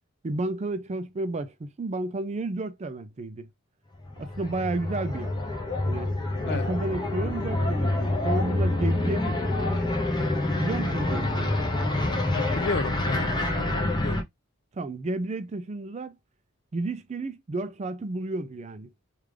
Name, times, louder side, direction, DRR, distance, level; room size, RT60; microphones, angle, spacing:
voice 1, 0.2-3.5 4.2-5.3 5.9-6.1 6.5-9.8 10.6-11.5 14.7-16.2 16.7-18.9, right 2 dB, 30° right, 0.4 m, -32 dB
sound 1, 4.0-14.2, left 1 dB, 20° left, 0.8 m, -27 dB
voice 2, 12.3-14.2, left 4 dB, 50° left, 0.5 m, -32 dB
3.5 x 2.4 x 3.2 m
head